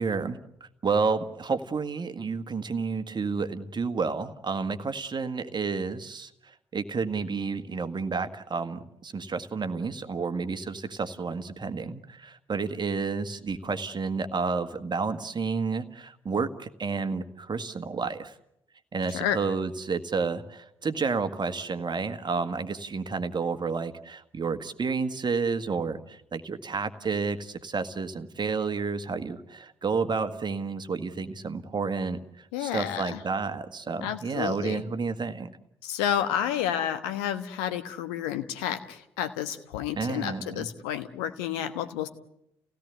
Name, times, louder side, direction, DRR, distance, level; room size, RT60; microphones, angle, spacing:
voice 1, 0.0-18.3 18.9-35.5 40.0-40.7, right 4 dB, 35° right, 9 dB, 1.7 m, -30 dB
voice 2, 32.5-33.2 34.0-34.8 35.8-42.1, left 10 dB, 75° left, 10 dB, 1.3 m, -30 dB
29.0 x 17.0 x 8.2 m, 0.83 s
figure-of-eight pair, 45°, 13 cm